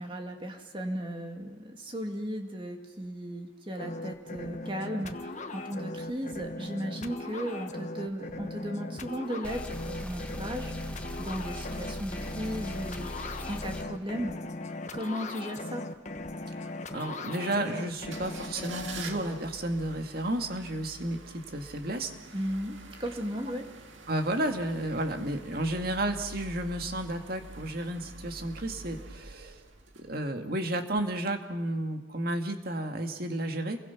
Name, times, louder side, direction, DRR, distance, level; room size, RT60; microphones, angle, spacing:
voice 1, 0.0-14.4 14.9-15.9 22.3-23.7, equal, 25° right, 3 dB, 2.3 m, -36 dB
sound 1, 3.8-19.4, left 2 dB, 40° left, 1.3 m, -39 dB
sound 2, 9.4-13.8, equal, 5° left, 1.7 m, -40 dB
voice 2, 16.9-22.1 24.1-29.6 30.0-33.8, right 1 dB, 50° right, 5 dB, 2.1 m, -32 dB
sound 3, 18.0-30.5 30.9-31.0, right 3 dB, 80° right, 2.0 m, -47 dB
29.5 x 22.5 x 5.9 m, 1.1 s
head